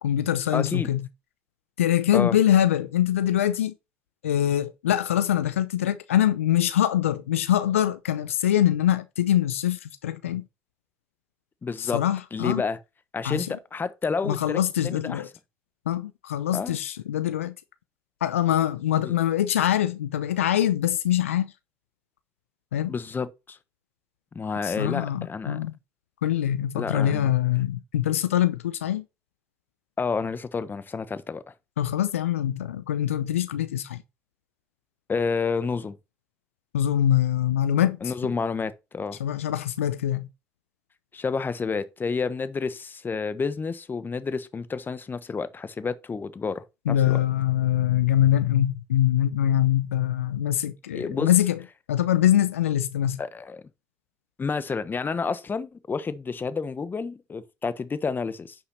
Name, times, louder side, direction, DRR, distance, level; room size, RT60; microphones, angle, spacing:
voice 1, 0.0-1.0 1.8-3.7 4.2-10.4 11.8-12.6 13.2-13.5 14.2-15.3 15.9-17.5 18.2-21.5 22.7-22.9 24.6-25.8 26.2-29.0 31.8-34.0 36.7-38.1 39.2-40.3 46.9-51.6 51.9-53.2, left 11 dB, 85° left, 0.6 m, -24 dB
voice 2, 0.5-0.9 2.1-2.3 11.6-12.0 12.3-12.8 13.1-15.2 16.5-16.8 19.0-19.1 22.9-23.6 24.3-25.6 26.7-27.3 30.0-31.4 35.1-36.0 38.0-39.2 41.1-47.2 50.9-51.3 53.2-53.6 54.4-58.6, left 5 dB, 30° left, 1.3 m, -30 dB
9.8 x 5.7 x 4.2 m
hypercardioid pair, 60°, 7 cm